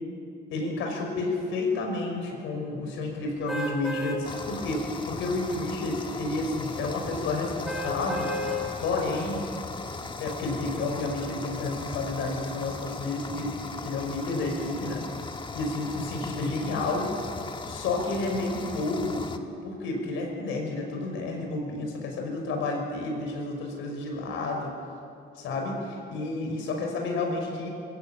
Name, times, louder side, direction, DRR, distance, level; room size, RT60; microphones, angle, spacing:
voice 1, 0.5-8.3 8.8-9.5 10.2-13.6 13.8-15.0 15.6-17.1 17.7-24.8 25.4-27.7, left 2 dB, 85° left, 2 dB, 5.4 m, -30 dB
sound 1, 3.5-4.2 4.7-4.9 7.7-8.6 9.2-9.3, left 1 dB, ahead, 4.8 m, -32 dB
sound 2, 4.2-19.4, left 3 dB, 25° left, 1.5 m, -38 dB
22.0 x 16.5 x 8.8 m, 2.5 s
cardioid pair, 105°, 20 cm